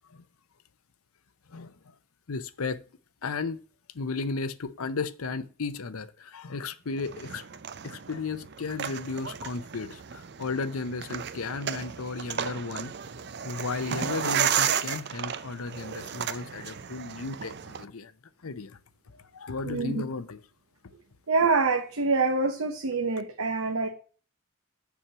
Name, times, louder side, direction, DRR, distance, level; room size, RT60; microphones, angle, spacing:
voice 1, 2.3-2.8 3.2-3.6 3.9-7.4 7.8-12.9 13.4-18.1 18.4-18.8 19.3-20.4, left 4 dB, 80° left, 0.7 m, -34 dB
sound 1, 7.0-17.8, right 8 dB, 50° right, 0.6 m, -33 dB
voice 2, 21.3-23.9, right 3 dB, 80° right, 1.0 m, -25 dB
7.1 x 6.1 x 6.7 m
head